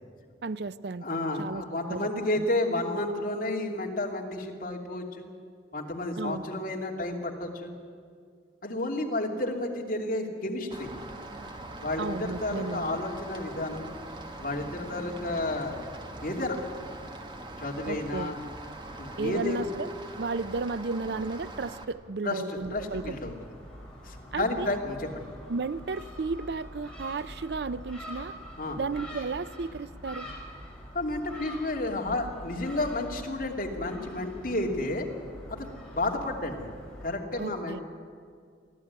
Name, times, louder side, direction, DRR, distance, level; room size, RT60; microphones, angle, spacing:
voice 1, 0.4-1.1 1.4-2.4 6.2-6.5 12.0-13.0 17.9-18.3 19.2-19.9 20.2-23.3 24.3-24.8 25.5-28.3 28.8-30.3 37.4-37.8, right 4 dB, 65° right, 16 dB, 0.5 m, -33 dB
voice 2, 1.0-5.3 5.7-7.7 8.6-10.9 11.8-13.9 14.4-15.8 16.2-16.6 17.6-18.4 19.0-19.7 22.2-23.3 24.0-25.3 28.6-28.8 30.9-35.1 35.5-36.7 37.0-37.8, left 2 dB, 50° left, 0 dB, 2.8 m, -31 dB
Rain, 10.7-21.8, right 1 dB, 25° right, 1.5 m, -42 dB
Gull seagull, 22.6-37.2, equal, 5° left, 4.3 m, -44 dB
23.0 x 15.0 x 9.5 m, 2.2 s
head